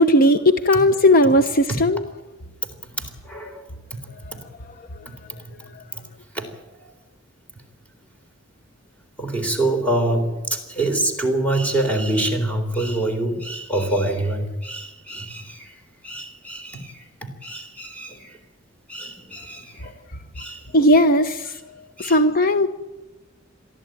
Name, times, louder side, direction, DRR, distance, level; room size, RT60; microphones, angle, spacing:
voice 1, 0.0-2.0 20.7-21.6 22.0-22.7, left 1 dB, 50° left, 10 dB, 0.9 m, -16 dB
voice 2, 2.6-3.6 5.1-5.4 5.9-6.0 6.3-6.5 9.2-18.4 18.9-19.9 20.4-20.9 22.0-22.2, right 1 dB, 5° left, 4 dB, 3.6 m, -26 dB
23.0 x 14.0 x 9.1 m, 1.2 s
head